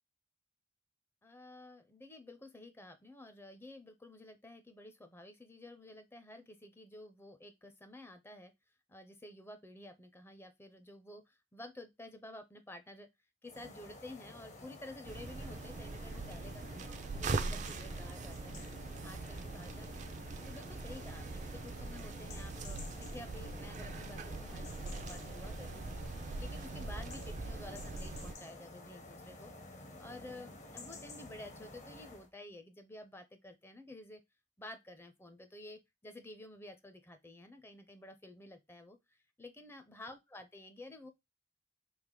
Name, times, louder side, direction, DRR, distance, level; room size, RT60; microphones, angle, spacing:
voice 1, 1.2-8.5 8.9-13.1 13.4-18.7 19.0-20.0 20.4-26.0 26.4-29.5 30.0-34.2 34.6-41.1, left 1 dB, 15° left, 0.5 m, -51 dB
sound 1, 13.4-32.3, left 2 dB, 45° left, 0.8 m, -52 dB
sound 2, 15.1-28.4, right 3 dB, 45° right, 0.4 m, -42 dB
3.3 x 2.8 x 3.6 m
head